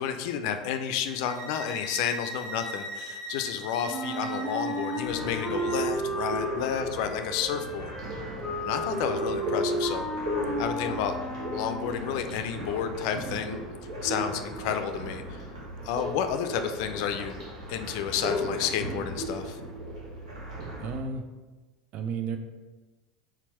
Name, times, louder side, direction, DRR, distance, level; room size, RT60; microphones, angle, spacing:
voice 1, 0.0-7.9 8.7-10.1 10.6-11.1 11.5-13.6 14.0-15.4 15.8-17.3 17.7-19.6, left 8 dB, 55° left, 7 dB, 0.4 m, -31 dB
sound 1, 1.1-6.0, equal, 10° left, 0.9 m, -40 dB
Wind instrument woodwind instrument, 3.9-12.0, right 1 dB, 5° right, 1.3 m, -33 dB
sound 2, 5.0-21.0, left 1 dB, 75° right, 1.2 m, -36 dB
voice 2, 20.8-21.2 21.9-22.4, right 5 dB, 45° right, 6 dB, 0.4 m, -32 dB
4.3 x 3.9 x 3.0 m, 1.2 s
figure-of-eight pair, 75°, 3 cm